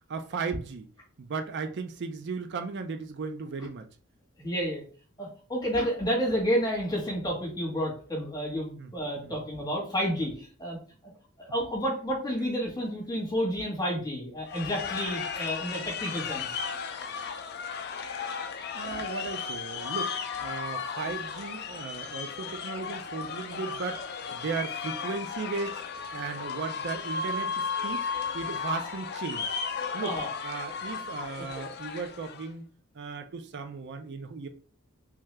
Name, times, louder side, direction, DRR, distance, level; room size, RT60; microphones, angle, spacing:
voice 1, 0.1-0.9 1.2-3.9 8.7-8.9 9.2-9.4 18.7-20.1 20.4-25.8 26.1-29.5 29.9-30.2 30.4-32.6 32.9-34.5, right 4 dB, 55° right, 0.4 m, -36 dB
voice 2, 4.4-4.8 5.2-10.8 11.0-11.1 11.4-16.5 18.8-19.0 30.0-30.3 31.4-31.8, equal, 20° left, 1.5 m, -30 dB
sound 1, 14.5-32.5, left 5 dB, 50° left, 0.4 m, -35 dB
3.4 x 2.7 x 3.3 m
head